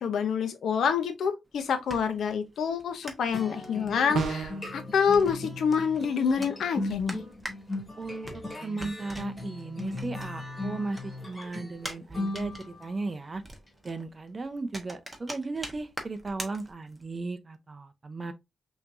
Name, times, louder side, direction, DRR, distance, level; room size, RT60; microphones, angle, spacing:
voice 1, 0.0-7.2, left 6 dB, 90° left, 0.9 m, -27 dB
sound 1, 1.5-10.6 10.9-17.2, right 1 dB, 15° right, 1.2 m, -44 dB
sound 2, 3.3-13.0, left 2 dB, 20° left, 2.0 m, -38 dB
sound 3, 4.1-4.7, right 5 dB, 90° right, 0.8 m, -30 dB
voice 2, 8.0-13.4 13.8-18.3, right 3 dB, 30° right, 0.7 m, -36 dB
5.7 x 3.0 x 2.6 m
wide cardioid pair, 115°, 0 cm